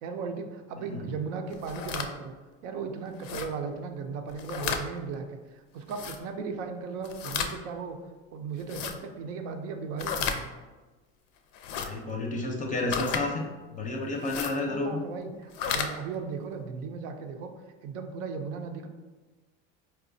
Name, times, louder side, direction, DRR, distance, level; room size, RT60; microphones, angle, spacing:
voice 1, 0.0-2.3 2.6-8.0 8.3-10.5 14.5-17.5 17.8-18.9, right 5 dB, 80° right, 5 dB, 0.5 m, -36 dB
sound 1, 1.5-2.1 3.2-3.5 4.3-4.8 5.9-6.2 7.0-7.5 8.6-8.9 10.0-10.4 11.5-11.9 12.9-13.2 14.2-14.5 15.4-15.9, left 7 dB, 80° left, 0.5 m, -32 dB
voice 2, 11.8-13.4 13.7-15.0, left 2 dB, 20° left, 0 dB, 0.5 m, -31 dB
4.1 x 2.3 x 2.6 m, 1.2 s
supercardioid pair, 95°, 36 cm